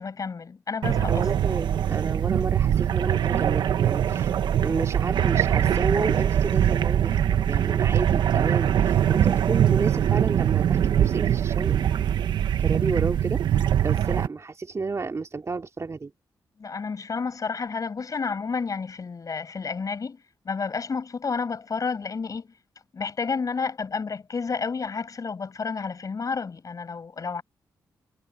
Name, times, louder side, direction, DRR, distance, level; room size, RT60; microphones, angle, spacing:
voice 1, 0.0-1.3 16.6-22.5 22.9-27.4, left 5 dB, 50° left, 7.0 m, -30 dB
sound 1, 0.8-14.3, right 10 dB, 80° right, 1.1 m, -22 dB
voice 2, 1.1-4.4 4.6-11.8 12.6-16.1, right 4 dB, 40° right, 3.1 m, -31 dB
cardioid pair, 65°, 8 cm